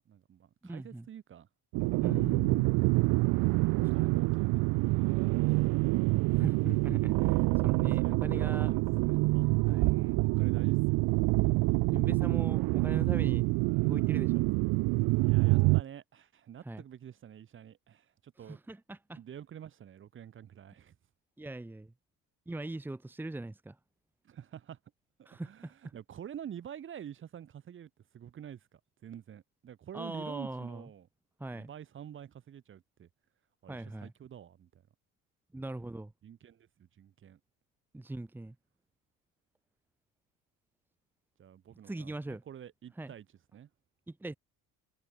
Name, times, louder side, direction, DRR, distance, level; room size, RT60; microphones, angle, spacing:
voice 1, 0.0-1.5 3.8-5.8 8.0-9.5 9.8-11.0 15.2-18.6 19.2-20.9 24.2-24.8 25.2-31.1 31.5-33.1 33.6-34.8 36.2-37.4 41.4-43.3 43.5-43.7, right 9 dB, 35° right, 7.0 m, -48 dB
voice 2, 0.6-1.0 2.0-2.7 3.8-4.1 6.3-8.7 9.7-9.9 11.9-13.5 13.8-14.4 16.6-16.8 18.4-19.2 21.4-21.9 22.5-23.7 25.2-25.7 29.9-30.8 31.4-31.7 33.7-34.1 35.5-36.1 37.9-38.5 41.8-42.4 43.0-43.1 44.1-44.4, right 2 dB, 5° right, 1.7 m, -40 dB
sound 1, 1.7-15.8, right 25 dB, 65° right, 0.5 m, -26 dB
cardioid pair, 175°, 36 cm